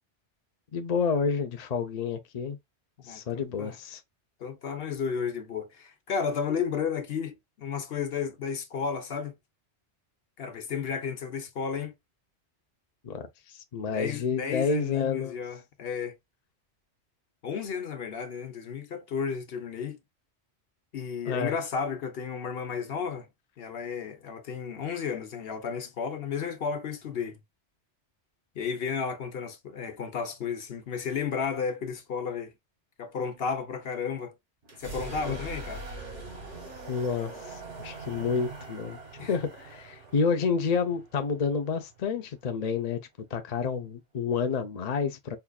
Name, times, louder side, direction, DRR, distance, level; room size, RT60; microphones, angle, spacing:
voice 1, 0.7-2.6 3.0-4.0 13.0-15.4 21.3-21.6 35.3-35.4 36.9-43.0 43.3-45.4, left 5 dB, 45° left, 0.6 m, -29 dB
voice 2, 3.0-3.8 4.4-9.3 10.4-11.9 13.9-16.2 17.4-20.0 20.9-23.3 23.6-27.4 28.5-32.5 33.0-34.3 34.8-35.8 39.2-39.4, left 6 dB, 60° left, 0.9 m, -33 dB
sound 1, 34.6-42.4, right 3 dB, 85° right, 1.9 m, -42 dB
5.6 x 2.4 x 2.2 m
omnidirectional pair, 1.2 m